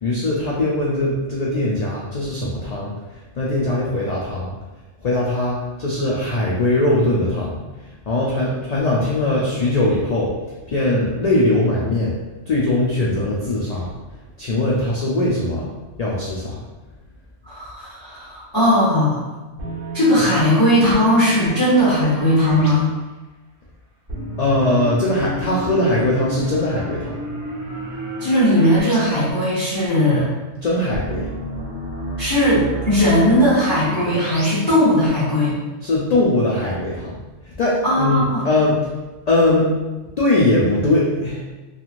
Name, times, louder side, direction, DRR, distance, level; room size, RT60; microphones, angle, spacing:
voice 1, 0.0-2.9 3.4-4.5 5.0-7.6 8.1-10.3 10.7-12.2 12.5-13.9 14.4-15.7 16.0-16.6 24.4-27.2 30.6-31.3 35.8-37.1 37.5-38.8 39.3-39.7 40.2-41.4, left 1 dB, 80° left, -5 dB, 0.3 m, -20 dB
voice 2, 17.4-19.2 19.9-22.9 28.2-30.3 32.2-35.6 37.8-38.4, equal, 20° left, -11 dB, 0.7 m, -18 dB
sound 1, 19.6-22.7 24.1-28.9 29.3-29.4 30.9-34.5, equal, 50° right, 1.0 m, -31 dB
3.0 x 2.4 x 2.4 m, 1.2 s
omnidirectional pair, 1.2 m